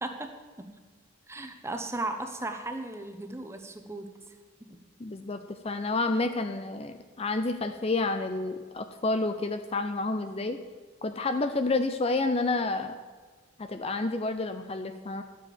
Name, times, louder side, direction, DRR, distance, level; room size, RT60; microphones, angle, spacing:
voice 1, 0.0-0.3 0.6-0.7 1.3-4.2, right 2 dB, 15° right, 6 dB, 0.9 m, -36 dB
voice 2, 5.0-10.6 11.0-13.0 13.6-15.2, left 3 dB, 30° left, 8 dB, 0.5 m, -29 dB
12.5 x 7.5 x 6.9 m, 1.5 s
head